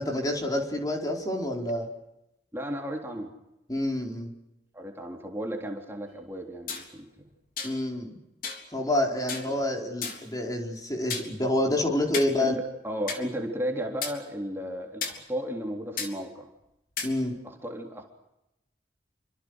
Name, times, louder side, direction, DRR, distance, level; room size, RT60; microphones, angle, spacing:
voice 1, 0.0-1.9 3.7-4.3 7.6-8.2 8.7-12.5 17.0-17.3, left 1 dB, 20° left, 0 dB, 4.6 m, -28 dB
voice 2, 2.5-3.3 4.7-7.1 7.7-7.8 9.5-9.7 12.4-12.5 12.8-16.5 17.4-18.0, equal, 15° right, 1 dB, 3.6 m, -34 dB
sound 1, 6.7-6.9 7.6-7.8 8.4-8.6 9.3-9.5 10.0-10.3 11.1-11.3 12.1-12.3 13.1-13.2 14.0-14.1 15.0-15.2 16.0-16.1 17.0-17.1, left 5 dB, 50° left, 3.8 m, -33 dB
28.5 x 25.5 x 6.5 m, 0.89 s
head